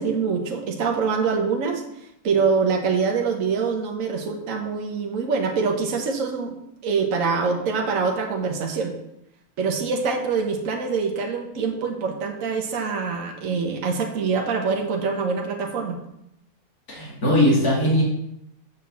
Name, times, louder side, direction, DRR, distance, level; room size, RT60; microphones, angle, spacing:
voice 1, 0.0-1.8 2.2-6.6 6.8-9.0 9.6-16.0, right 5 dB, 65° right, 2 dB, 1.4 m, -24 dB
voice 2, 16.9-18.0, left 1 dB, 90° left, -6 dB, 3.2 m, -19 dB
6.7 x 5.7 x 7.0 m, 0.81 s
omnidirectional pair, 1.5 m